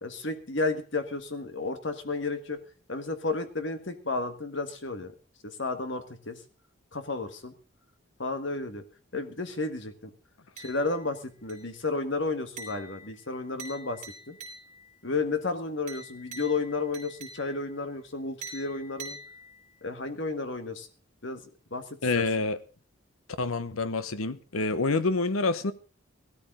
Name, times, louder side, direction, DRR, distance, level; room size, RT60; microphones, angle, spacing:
voice 1, 0.0-2.6 2.9-5.1 5.4-6.4 6.9-7.5 8.2-8.8 9.1-10.1 10.6-14.0 14.3-14.4 15.0-19.2 19.8-20.9 21.2-21.4 21.7-21.8 22.1-22.2, left 3 dB, 60° left, 1.7 m, -32 dB
sound 1, 10.6-11.1 11.5-11.9 12.6-15.0 15.9-17.8 18.4-19.8, right 2 dB, 35° right, 3.6 m, -45 dB
voice 2, 22.0-22.6 23.4-25.7, left 3 dB, 85° left, 1.0 m, -27 dB
16.5 x 13.0 x 3.8 m
head